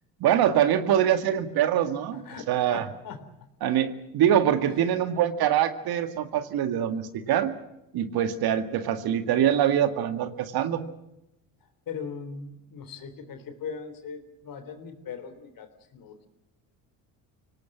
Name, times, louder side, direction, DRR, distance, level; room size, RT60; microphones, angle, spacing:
voice 1, 0.2-2.9 3.6-7.5 7.9-10.8, right 10 dB, 65° right, 9 dB, 2.1 m, -24 dB
voice 2, 2.1-3.5 4.7-5.0 11.6-16.3, left 6 dB, 55° left, 9 dB, 3.7 m, -40 dB
24.5 x 18.5 x 7.5 m, 0.86 s
supercardioid pair, 85°, 40 cm